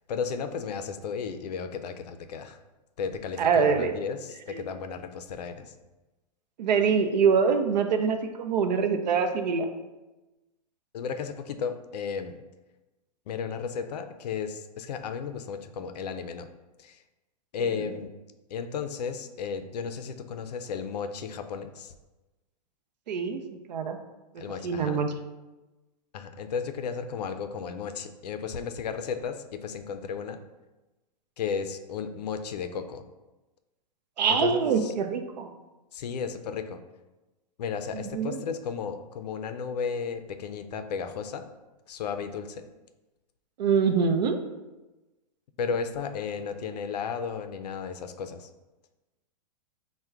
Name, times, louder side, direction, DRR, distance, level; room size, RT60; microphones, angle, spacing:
voice 1, 0.1-2.6 3.0-5.7 10.9-12.4 13.3-16.5 16.8-17.0 17.5-18.1 18.5-21.9 24.4-25.0 26.1-30.4 31.4-33.0 34.3-34.9 35.9-36.8 37.6-41.5 41.9-42.7 45.6-48.5, left 6 dB, 75° left, 8 dB, 0.4 m, -34 dB
voice 2, 3.4-3.9 4.5-4.6 6.6-9.7 23.1-23.4 23.7-24.0 24.6-25.1 34.2-35.5 37.9-38.4 43.6-44.4, right 6 dB, 90° right, 7 dB, 0.5 m, -24 dB
4.4 x 2.2 x 3.5 m, 1.1 s
hypercardioid pair, 165°, 21 cm